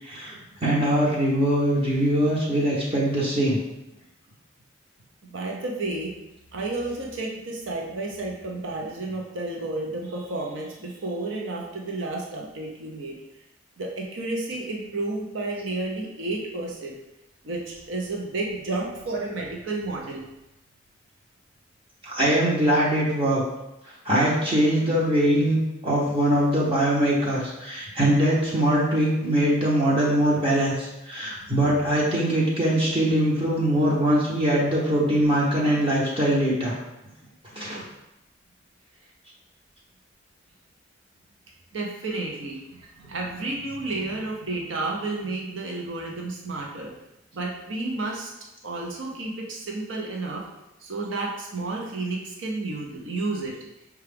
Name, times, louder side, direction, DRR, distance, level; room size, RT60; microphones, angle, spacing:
voice 1, 0.0-3.6 22.0-23.4 24.0-36.8 37.5-37.8, right 1 dB, 30° right, -5 dB, 0.7 m, -22 dB
voice 2, 5.3-6.1 6.5-13.2 13.8-16.9 17.4-20.2 41.7-46.9 47.3-48.3 48.6-50.4 50.8-53.5, right 2 dB, 80° right, -1 dB, 0.7 m, -31 dB
5.6 x 2.4 x 3.4 m, 0.92 s
head